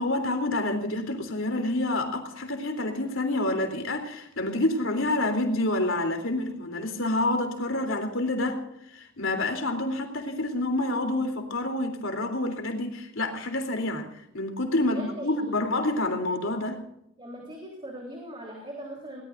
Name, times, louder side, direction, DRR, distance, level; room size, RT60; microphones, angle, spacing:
voice 1, 0.0-14.1 14.3-16.8, left 2 dB, 70° left, 5 dB, 3.5 m, -28 dB
voice 2, 14.8-15.6 17.2-19.2, right 1 dB, 25° right, -1 dB, 3.7 m, -40 dB
22.5 x 19.0 x 2.6 m, 0.81 s
head